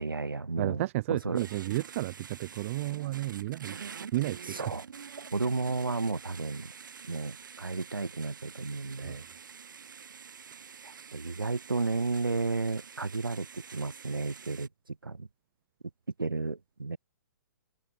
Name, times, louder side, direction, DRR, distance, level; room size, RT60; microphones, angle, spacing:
voice 1, 0.0-0.8 1.1-1.4 4.6-4.8 5.3-6.7 7.1-9.2 10.8-14.7 15.0-15.3 16.2-17.0, right 3 dB, 90° right, 2.0 m, -32 dB
voice 2, 0.6-3.8 4.1-4.7 9.0-9.3, right 17 dB, 40° right, 0.6 m, -32 dB
sound 1, 1.4-14.7, right 6 dB, 70° right, 4.9 m, -47 dB
figure-of-eight pair, 130°, 11 cm